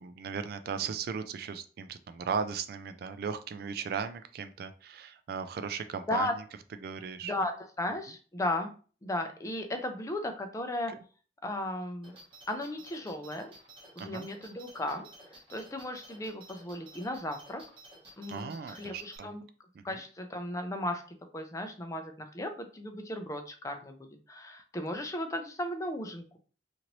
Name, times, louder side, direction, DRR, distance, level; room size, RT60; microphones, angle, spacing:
voice 1, 0.0-6.3 6.8-7.3 14.0-14.3 18.3-19.4 19.8-20.0, right 6 dB, 60° right, 10 dB, 0.3 m, -37 dB
voice 2, 7.2-8.7 9.0-10.9 11.4-12.1 12.5-13.5 14.0-15.1 15.5-17.6 18.2-19.4 19.8-21.0 21.3-26.4, left 1 dB, 20° left, 6 dB, 0.4 m, -35 dB
sound 1, 12.0-19.2, right 1 dB, 30° right, 0.9 m, -53 dB
3.0 x 2.5 x 2.9 m, 0.39 s
head